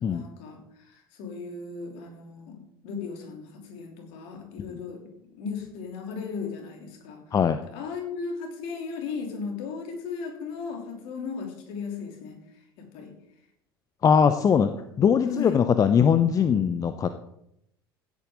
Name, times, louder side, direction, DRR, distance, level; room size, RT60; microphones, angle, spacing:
voice 1, 0.0-2.6 2.8-7.2 7.7-12.4 12.8-13.1 14.5-14.6 15.2-15.6, left 5 dB, 55° left, 2 dB, 3.2 m, -36 dB
voice 2, 14.0-14.7 15.0-17.1, left 7 dB, 30° left, 11 dB, 0.7 m, -21 dB
16.0 x 8.9 x 3.8 m, 0.76 s
figure-of-eight pair, 70°, 12 cm